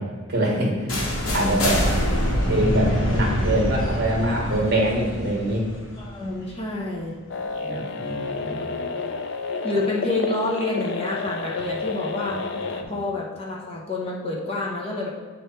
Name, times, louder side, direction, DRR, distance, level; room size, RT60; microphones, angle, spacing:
voice 1, 0.3-1.8 2.5-5.6 7.6-8.7 12.3-12.4 12.8-12.9, right 1 dB, 50° right, -1 dB, 1.4 m, -24 dB
sound 1, 0.9-6.7, equal, 80° left, 1.2 m, -25 dB
voice 2, 1.3-1.8 6.0-7.1 9.6-12.4 12.7-15.1, left 2 dB, 30° left, -4 dB, 1.0 m, -28 dB
sound 2, 7.3-12.8, left 4 dB, 55° left, 0.5 m, -30 dB
8.5 x 3.4 x 4.4 m, 1.5 s
head